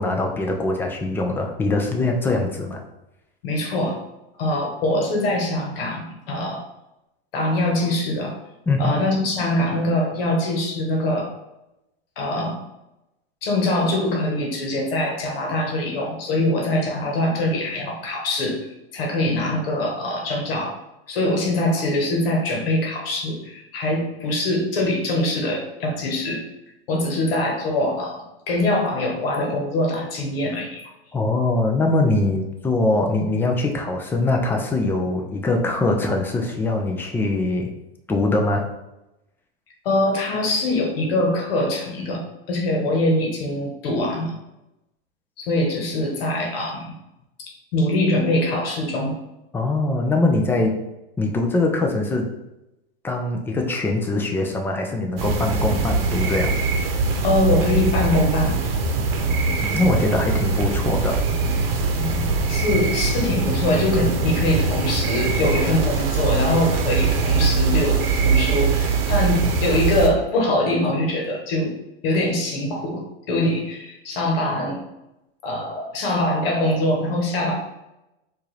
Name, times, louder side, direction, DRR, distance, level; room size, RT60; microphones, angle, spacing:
voice 1, 0.0-2.8 8.7-8.9 31.1-37.7 38.1-38.6 49.5-50.8 51.2-52.3 53.0-56.6 59.6-61.2, left 2 dB, 5° left, 2 dB, 0.4 m, -22 dB
voice 2, 3.4-4.0 4.4-6.6 7.3-8.4 8.8-11.3 12.2-12.6 13.4-18.6 18.9-20.8 21.1-26.4 26.9-30.8 39.8-42.2 42.5-44.4 45.4-46.9 47.4-49.1 57.2-58.9 62.0-71.7 72.0-74.8 75.4-77.5, left 1 dB, 65° left, 0 dB, 1.2 m, -23 dB
sound 1, 55.2-70.1, right 4 dB, 65° right, 0.9 m, -22 dB
4.5 x 2.6 x 3.2 m, 0.92 s
hypercardioid pair, 125°, 30 cm